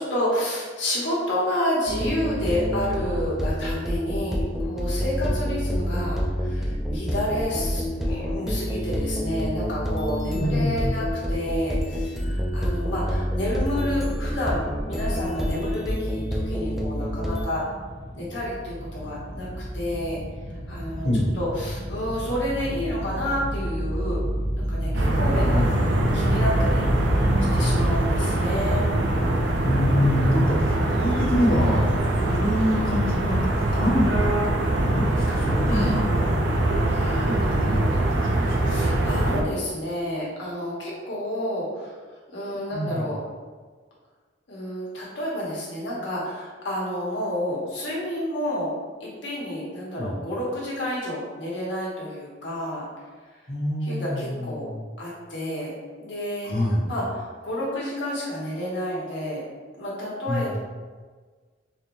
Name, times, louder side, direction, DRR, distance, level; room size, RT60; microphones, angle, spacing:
voice 1, 0.0-17.6 18.1-20.2 20.7-21.1 21.3-24.2 24.6-25.6 26.1-26.8 27.5-28.9 35.4-35.9 36.9-37.9 38.6-41.9 42.3-43.2 44.5-48.7 49.0-52.9 53.8-54.7 55.0-55.7 56.0-56.5 56.9-59.4 59.7-60.6, left 1 dB, 80° left, -5 dB, 1.3 m, -30 dB
sound 1, 1.9-17.5, equal, ahead, 0.4 m, -28 dB
voice 2, 10.3-10.9 21.0-21.4 25.4-26.4 29.6-33.4 33.7-34.3 34.6-36.4 37.2-38.8 42.7-43.2 50.0-50.2 53.5-54.8 56.4-56.9 60.3-60.5, left 1 dB, 55° left, -7 dB, 1.1 m, -26 dB
sound 2, 14.8-28.0, equal, 50° right, 1.0 m, -30 dB
sound 3, 24.9-39.4, right 1 dB, 75° right, 0.6 m, -23 dB
3.9 x 3.1 x 2.7 m, 1.5 s
head